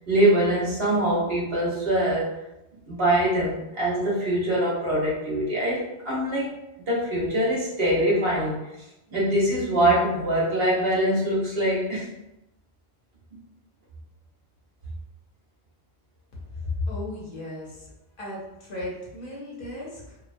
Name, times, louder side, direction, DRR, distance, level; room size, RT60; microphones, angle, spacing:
voice 1, 0.1-2.3 2.9-6.6 6.9-8.6 9.1-12.1 13.3-13.4, right 1 dB, 70° right, -7 dB, 1.2 m, -23 dB
voice 2, 16.8-17.9 18.2-20.2, left 2 dB, 60° left, -5 dB, 0.9 m, -35 dB
2.8 x 2.1 x 2.5 m, 0.91 s
omnidirectional pair, 1.1 m